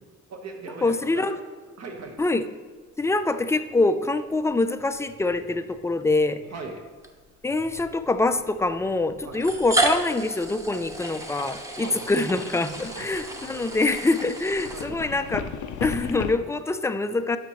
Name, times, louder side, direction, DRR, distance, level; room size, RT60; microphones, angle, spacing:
voice 1, 0.3-1.2 1.8-2.2 6.5-6.8 9.2-9.4 11.8-12.1 12.9-13.3 14.7-15.1, right 3 dB, 60° right, 2 dB, 1.4 m, -39 dB
voice 2, 0.8-1.4 2.2-2.4 3.0-6.4 7.4-15.5 15.8-17.4, left 2 dB, 10° left, 10 dB, 0.4 m, -25 dB
sound 1, 4.4-4.6 4.9-5.7 7.0-7.3 7.7-16.3, left 8 dB, 75° left, 0.6 m, -39 dB
sound 2, 5.9-6.0 7.0-7.1 8.3-8.4 9.3-15.3, right 1 dB, 10° right, 0.9 m, -31 dB
11.5 x 5.8 x 3.1 m, 1.5 s
cardioid pair, 90°, 30 cm